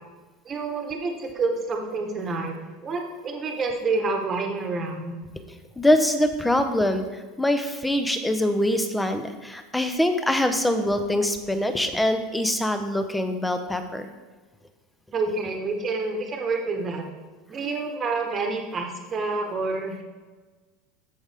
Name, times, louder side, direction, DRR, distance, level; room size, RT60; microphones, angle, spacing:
voice 1, 0.4-2.5 2.8-5.2 15.1-17.0 17.5-20.0, right 3 dB, 25° right, 3 dB, 1.2 m, -28 dB
voice 2, 5.8-14.1, left 1 dB, 5° left, 7 dB, 0.6 m, -24 dB
14.0 x 5.2 x 3.5 m, 1.3 s
supercardioid pair, 160°, 0 cm